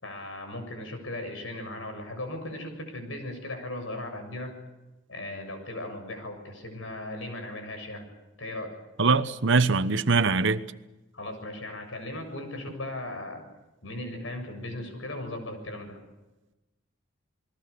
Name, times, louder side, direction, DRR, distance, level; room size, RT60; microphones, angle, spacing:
voice 1, 0.0-4.5 5.1-8.0 8.4-8.8 11.1-13.4 13.8-16.0, left 1 dB, 75° left, 7.3 m, -37 dB
voice 2, 9.0-10.6, right 4 dB, 65° right, 1.1 m, -22 dB
29.0 x 21.0 x 6.9 m
head